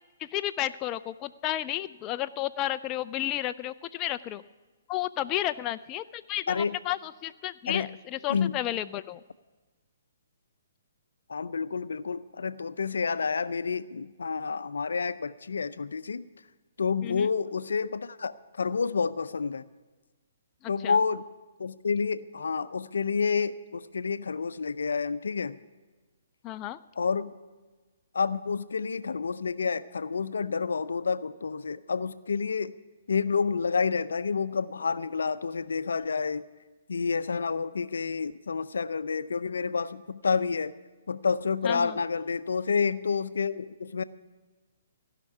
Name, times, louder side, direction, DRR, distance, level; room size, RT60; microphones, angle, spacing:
voice 1, 0.2-4.4 4.9-9.2 17.0-17.3 20.6-21.0 26.4-26.8 41.6-42.0, left 13 dB, 25° left, 11 dB, 0.3 m, -32 dB
voice 2, 11.3-16.3 16.8-19.6 20.7-21.2 21.6-25.6 27.0-27.3 28.1-32.7 33.1-36.5 36.9-40.7 41.1-44.0, left 5 dB, 75° left, 14 dB, 0.5 m, -29 dB
16.0 x 5.8 x 10.0 m, 1.3 s
hypercardioid pair, 135°, 0 cm